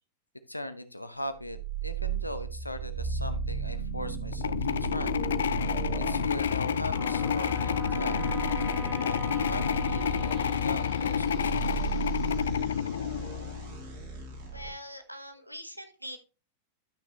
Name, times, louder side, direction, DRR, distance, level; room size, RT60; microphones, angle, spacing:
voice 1, 0.5-5.2 6.0-8.2 9.0-11.8, left 1 dB, 85° left, 11 dB, 0.9 m, -39 dB
sound 1, 1.5-14.7, right 6 dB, 55° right, 4.2 m, -35 dB
sound 2, 4.3-13.7, left 8 dB, 65° left, 0.4 m, -29 dB
Wind instrument woodwind instrument, 7.0-11.4, right 3 dB, 10° right, 1.4 m, -42 dB
voice 2, 14.5-16.2, equal, 90° right, 8 dB, 1.2 m, -42 dB
12.0 x 6.0 x 3.0 m, 0.32 s
figure-of-eight pair, 90°, 0 cm